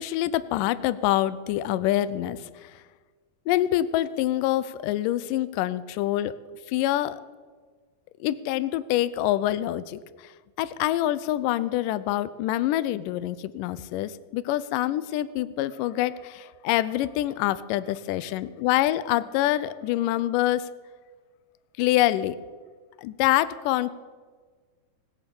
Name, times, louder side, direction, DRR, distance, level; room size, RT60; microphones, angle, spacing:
voice 1, 0.0-2.8 3.5-6.3 6.7-7.2 8.2-10.3 10.6-20.7 21.8-22.4 23.0-23.9, left 14 dB, 80° left, 16 dB, 2.0 m, -26 dB
19.5 x 8.9 x 6.9 m, 1.5 s
omnidirectional pair, 4.2 m